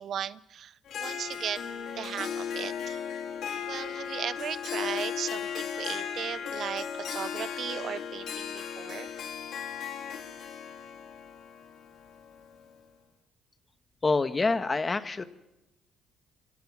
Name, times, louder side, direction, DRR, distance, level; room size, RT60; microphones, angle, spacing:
voice 1, 0.0-1.6 2.0-3.0 3.7-9.1, right 9 dB, 60° right, 17 dB, 0.6 m, -36 dB
Harp, 0.9-12.7, left 8 dB, 65° left, 2.9 m, -36 dB
voice 2, 14.0-15.2, left 3 dB, 25° left, 10 dB, 1.3 m, -26 dB
25.5 x 17.0 x 6.2 m, 0.96 s
cardioid pair, 80°, 0 cm